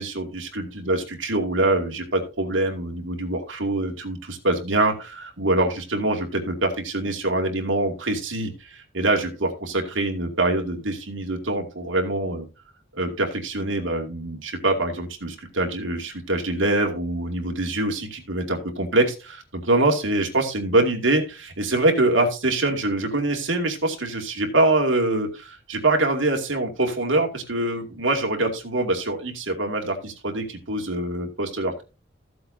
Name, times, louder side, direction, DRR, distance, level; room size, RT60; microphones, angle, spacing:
voice 1, 0.0-12.5 12.9-31.8, right 2 dB, 80° right, 2 dB, 2.4 m, -24 dB
15.0 x 7.7 x 2.8 m, 0.30 s
head